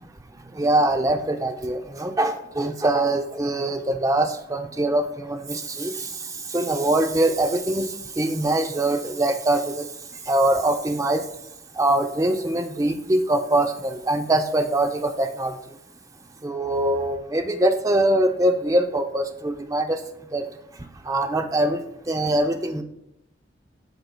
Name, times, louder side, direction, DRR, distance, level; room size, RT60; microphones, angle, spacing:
voice 1, 0.6-5.9 6.5-7.9 8.2-9.7 10.3-11.2 11.8-15.5 16.4-20.0 20.3-20.5 21.1-21.8 22.1-22.8, right 1 dB, 20° right, 6 dB, 0.5 m, -23 dB
13.0 x 4.7 x 2.2 m, 0.79 s
head